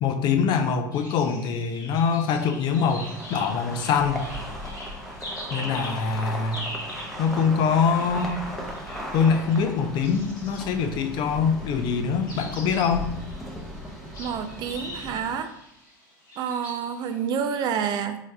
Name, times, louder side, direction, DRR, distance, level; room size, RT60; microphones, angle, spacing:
voice 1, 0.0-4.3 5.5-6.6 7.2-8.5 9.1-13.1, left 6 dB, 45° left, 7 dB, 0.5 m, -24 dB
sound 1, 0.9-11.5 12.2-17.5, left 1 dB, 80° left, 1.4 m, -42 dB
sound 2, 2.7-15.4, equal, ahead, 0.8 m, -37 dB
voice 2, 14.2-15.5 16.4-18.2, right 7 dB, 40° right, 8 dB, 0.4 m, -28 dB
4.0 x 3.2 x 2.3 m, 0.80 s
figure-of-eight pair, 75°, 11 cm